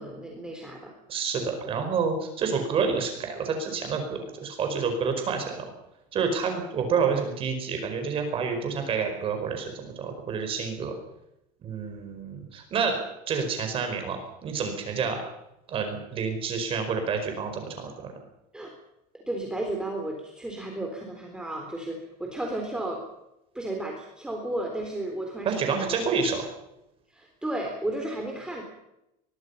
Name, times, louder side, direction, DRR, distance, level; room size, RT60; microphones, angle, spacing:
voice 1, 0.0-0.9 18.5-18.7 19.1-23.0 23.5-25.9 27.1-28.6, right 1 dB, 5° right, 1 dB, 3.7 m, -33 dB
voice 2, 1.1-5.6 6.1-10.9 11.6-13.0 13.3-15.2 15.7-18.1 25.4-26.4, right 5 dB, 30° right, 5 dB, 5.0 m, -28 dB
23.5 x 21.5 x 5.7 m, 0.86 s
cardioid pair, 165°, 18 cm